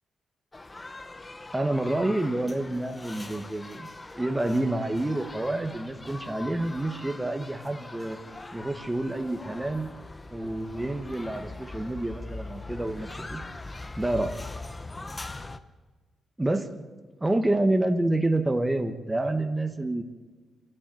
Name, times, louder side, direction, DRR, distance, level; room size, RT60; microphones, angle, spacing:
sound 1, 0.5-15.6, left 2 dB, 20° left, 0.9 m, -41 dB
voice 1, 1.5-3.9 4.1-8.2 8.5-9.9 10.3-13.4 14.0-14.3 16.4-16.9 17.2-20.0, right 2 dB, 10° right, 6 dB, 1.4 m, -28 dB
27.0 x 11.5 x 9.4 m, 1.4 s
cardioid pair, 105°, 0 cm